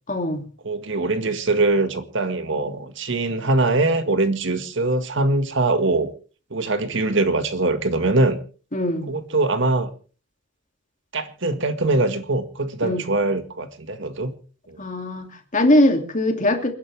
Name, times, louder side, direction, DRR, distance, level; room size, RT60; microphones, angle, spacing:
voice 1, 0.1-0.4 8.7-9.1 12.8-13.1 14.8-16.7, left 1 dB, 40° left, 5 dB, 2.8 m, -21 dB
voice 2, 0.6-6.1 6.5-8.4 9.1-9.9 11.1-14.3 14.7-14.8, right 2 dB, 65° right, 9 dB, 1.8 m, -22 dB
28.5 x 11.0 x 3.5 m, 0.38 s
head